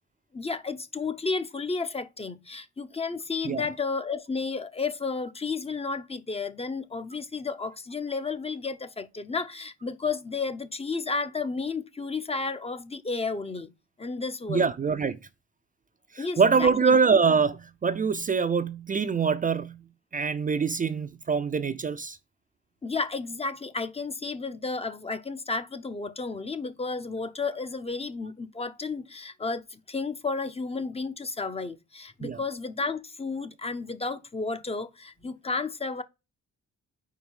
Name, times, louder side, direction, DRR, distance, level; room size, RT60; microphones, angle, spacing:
voice 1, 0.3-13.7 14.0-14.7 16.2-17.0 22.8-36.0, left 4 dB, 20° left, 0.6 m, -32 dB
voice 2, 14.5-15.2 16.1-22.2 32.2-32.4, right 5 dB, 30° right, 0.5 m, -24 dB
4.7 x 4.4 x 5.4 m
cardioid pair, 90°, 30 cm